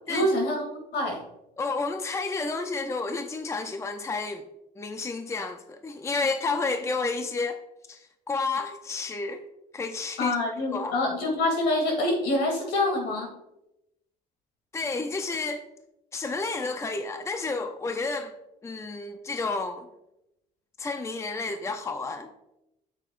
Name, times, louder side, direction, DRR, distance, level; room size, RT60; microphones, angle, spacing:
voice 1, 0.1-1.2 10.2-13.3, left 1 dB, 75° left, 1 dB, 2.6 m, -26 dB
voice 2, 1.6-4.4 4.8-7.6 7.9-9.4 9.7-10.4 10.7-10.9 14.7-15.7 16.1-18.3 18.6-19.9 20.8-22.3, left 3 dB, 15° left, 7 dB, 0.5 m, -31 dB
8.7 x 7.5 x 2.5 m, 0.90 s
cardioid pair, 100°, 18 cm